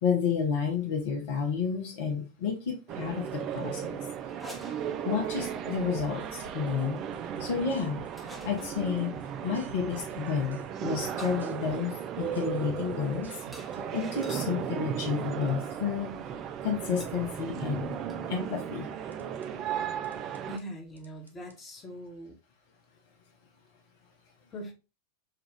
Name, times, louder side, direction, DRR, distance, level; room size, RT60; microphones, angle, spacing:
voice 1, 0.0-4.1 5.0-7.0 7.4-9.1 9.4-13.3 13.6-16.1 16.6-17.9 18.3-18.9, left 6 dB, 60° left, 0.8 m, -31 dB
sound 1, 2.9-20.6, right 9 dB, 40° right, 0.4 m, -36 dB
sound 2, 4.3-5.5 6.3-6.5 8.1-8.9 10.4-10.6 11.2-14.5 15.4-15.7 17.0-17.2 17.5-17.6 17.8-18.3, equal, 5° right, 0.9 m, -50 dB
sound 3, 6.0-6.9 7.1-10.7 10.9-14.3 19.1-19.5 20.0-20.6 21.0-21.6, right 4 dB, 85° right, 0.6 m, -50 dB
voice 2, 20.5-22.4 24.5-24.7, equal, 20° left, 1.1 m, -41 dB
3.7 x 2.4 x 3.4 m
figure-of-eight pair, 90°, 0 cm